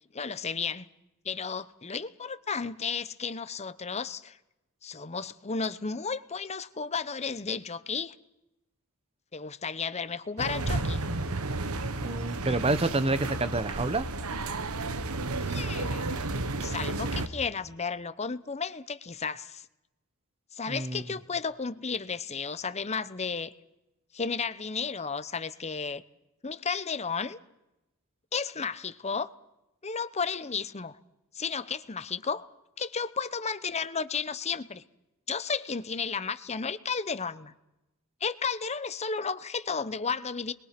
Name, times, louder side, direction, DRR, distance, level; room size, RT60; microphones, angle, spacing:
voice 1, 0.1-0.9 1.2-4.4 4.8-8.1 9.3-11.0 15.5-16.2 16.6-19.7 20.5-23.5 24.1-26.0 26.4-27.4 28.3-29.3 29.8-31.0 31.3-32.5 32.8-34.8 35.3-37.5 38.2-40.5, left 5 dB, 30° left, 0.9 m, -33 dB
sound 1, 10.4-17.3, right 2 dB, 80° right, 1.3 m, -32 dB
voice 2, 12.0-14.1 20.7-21.0, right 2 dB, 25° right, 1.1 m, -28 dB
30.0 x 21.5 x 6.0 m
head